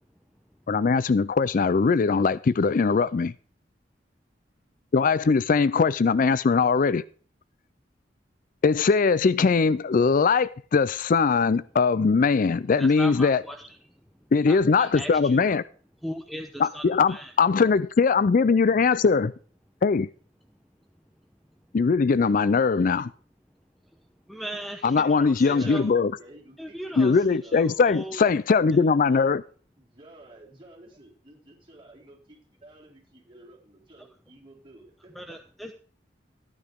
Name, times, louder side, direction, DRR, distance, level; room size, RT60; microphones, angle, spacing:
voice 1, 0.7-3.3 4.9-7.0 8.6-13.4 14.3-15.6 16.6-19.3 19.8-20.1 21.7-23.1 24.8-26.1 27.0-29.4, left 4 dB, 50° left, 0.4 m, -21 dB
voice 2, 12.8-15.5 16.0-17.3 23.8-23.9 24.3-25.9 26.6-28.2 34.0-34.1 35.1-35.7, equal, ahead, 0.9 m, -38 dB
voice 3, 25.4-27.7 28.6-29.2 29.8-35.4, right 1 dB, 30° right, 4.2 m, -49 dB
14.0 x 9.8 x 3.6 m
head